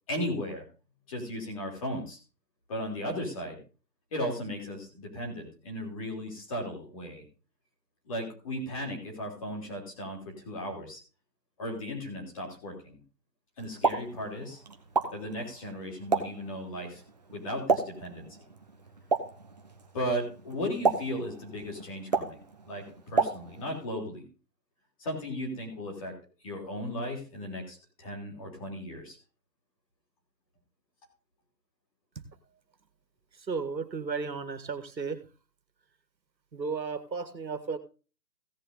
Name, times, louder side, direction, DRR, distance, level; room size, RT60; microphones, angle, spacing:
voice 1, 0.1-0.6 1.1-2.2 2.7-3.6 4.1-7.2 8.1-11.0 11.6-13.0 13.6-14.6 15.1-17.0 17.3-18.3 19.9-22.4 22.7-24.3 25.0-26.1 26.4-29.2, equal, 20° left, 0 dB, 3.3 m, -36 dB
Explosion, 13.6-23.9, right 4 dB, 25° right, 1.0 m, -33 dB
voice 2, 33.3-35.2 36.5-37.8, right 5 dB, 90° right, 11 dB, 2.1 m, -34 dB
16.5 x 7.3 x 4.0 m, 0.34 s
hypercardioid pair, 170°, 50 cm